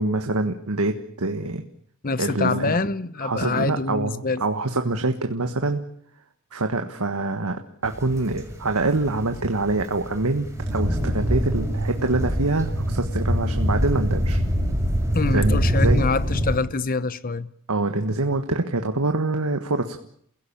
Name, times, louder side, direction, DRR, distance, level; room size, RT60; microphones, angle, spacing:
voice 1, 0.0-1.6 2.2-2.8 3.2-5.8 6.5-14.4 15.3-16.1 17.7-20.0, right 2 dB, 90° right, 1.5 m, -25 dB
voice 2, 2.0-4.4 15.1-17.5, left 3 dB, 40° left, 0.9 m, -25 dB
sound 1, 7.8-16.6, equal, 15° right, 5.5 m, -24 dB
28.5 x 16.5 x 8.7 m
head